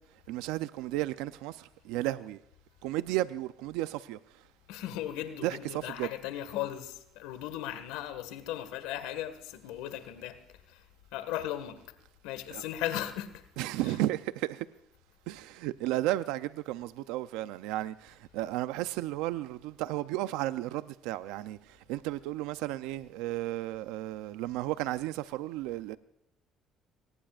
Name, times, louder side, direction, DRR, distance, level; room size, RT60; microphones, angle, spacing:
voice 1, 0.3-2.4 2.8-4.2 5.4-6.1 12.5-12.6 13.6-14.7 15.3-26.0, right 15 dB, 90° right, 0.6 m, -33 dB
voice 2, 4.7-10.4 10.7-10.8 11.1-11.8 12.2-13.4 13.8-14.0, left 12 dB, 90° left, 1.7 m, -37 dB
23.0 x 19.0 x 2.5 m
cardioid pair, 95°, 0 cm